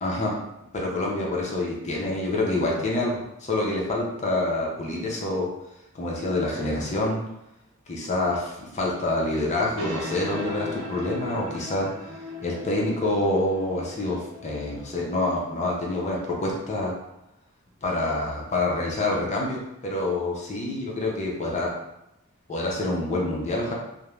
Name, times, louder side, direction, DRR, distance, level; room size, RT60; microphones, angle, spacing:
voice 1, 0.0-0.4 0.7-5.5 5.9-7.2 7.9-11.9 12.4-16.9 17.8-21.7 22.5-23.7, left 2 dB, 35° left, -3 dB, 0.5 m, -27 dB
sound 1, 9.7-16.7, left 1 dB, 70° right, 0.6 m, -39 dB
2.4 x 2.0 x 3.0 m, 0.86 s
head